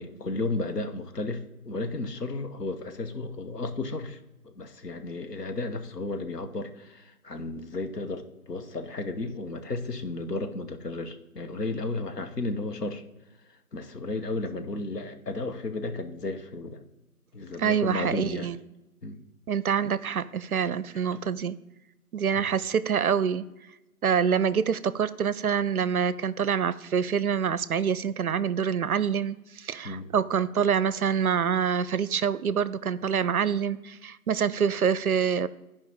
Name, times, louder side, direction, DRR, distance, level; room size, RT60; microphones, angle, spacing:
voice 1, 0.0-4.2 4.4-13.0 13.7-16.8 17.3-18.5 19.0-19.2 22.4-22.5 29.8-30.1, left 2 dB, 85° left, 7 dB, 1.2 m, -33 dB
voice 2, 17.6-18.6 19.5-21.6 22.1-23.5 24.0-35.5, right 7 dB, 70° right, 17 dB, 0.5 m, -26 dB
13.0 x 5.1 x 3.6 m, 1.0 s
figure-of-eight pair, 165°, 46 cm